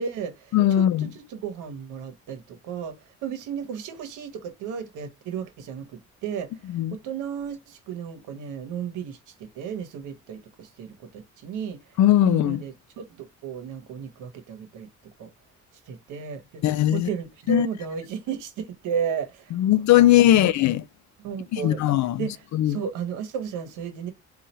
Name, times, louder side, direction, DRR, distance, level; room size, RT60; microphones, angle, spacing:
voice 1, 0.0-3.0 3.2-5.9 6.2-11.9 12.2-14.9 15.2-15.3 15.9-19.6 20.3-20.5 21.2-21.9 22.2-24.1, right 7 dB, 90° right, 1.1 m, -34 dB
voice 2, 0.5-1.1 6.7-7.0 12.0-12.6 16.6-17.1 17.5-17.7 19.5-20.8 21.5-22.3 22.5-22.8, left 13 dB, 65° left, 0.5 m, -19 dB
4.0 x 2.5 x 4.2 m
cardioid pair, 90°, 30 cm